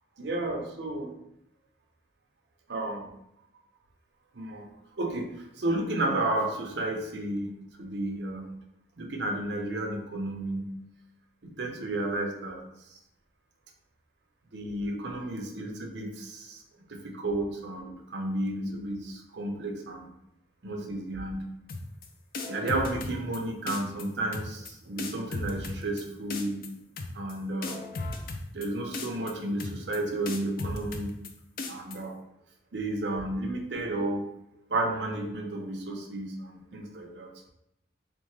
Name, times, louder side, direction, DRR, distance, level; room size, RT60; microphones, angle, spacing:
voice 1, 0.2-1.1 2.7-3.1 4.3-4.7 5.0-7.5 7.8-8.6 9.0-10.7 11.4-12.6 14.5-16.6 16.9-20.1 20.6-21.4 22.5-26.6 27.1-27.8 28.5-31.1 31.7-32.2 32.7-34.3 34.7-37.3, right 1 dB, 75° right, 2 dB, 0.7 m, -32 dB
sound 1, 21.7-22.1 22.3-23.4 23.7-24.0 24.3-24.7 25.0-26.0 26.3-26.7 27.0-27.3 27.6-28.7 28.9-29.3 29.6-30.0 30.3-31.3 31.6-32.0, left 3 dB, 50° left, 0.4 m, -35 dB
3.6 x 3.4 x 3.2 m, 0.82 s
head